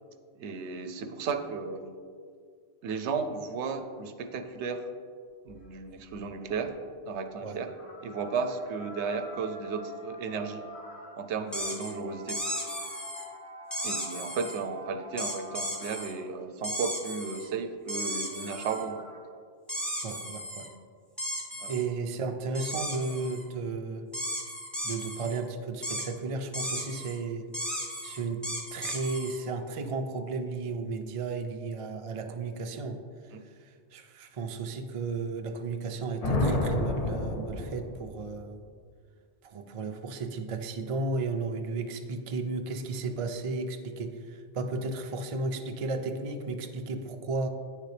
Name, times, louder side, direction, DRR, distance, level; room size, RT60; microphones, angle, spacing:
voice 1, 0.4-2.0 2.8-4.9 5.5-6.8 7.1-7.7 8.0-10.7 11.2-12.4 13.8-19.1 21.6-21.7 33.3-33.4, right 5 dB, 75° right, 8 dB, 0.9 m, -34 dB
sound 1, 5.5-16.4 17.9-19.2, equal, 80° left, 2.7 m, -46 dB
sound 2, 11.5-11.9 12.3-13.2 13.7-14.6 15.2-16.1 16.6-17.5 17.9-18.8 19.7-20.7 21.2-21.8 22.5-23.4 24.1-25.4 25.8-26.1 26.5-27.2 27.5-29.4, equal, ahead, 0.9 m, -35 dB
voice 2, 20.0-20.7 21.7-24.0 24.8-27.4 28.0-28.4 28.7-33.0 33.9-38.6 39.4-47.5, right 3 dB, 50° right, 5 dB, 0.4 m, -34 dB
sound 3, 36.2-38.2, left 1 dB, 40° left, 0.6 m, -29 dB
9.0 x 6.6 x 3.3 m, 2.1 s
omnidirectional pair, 1.2 m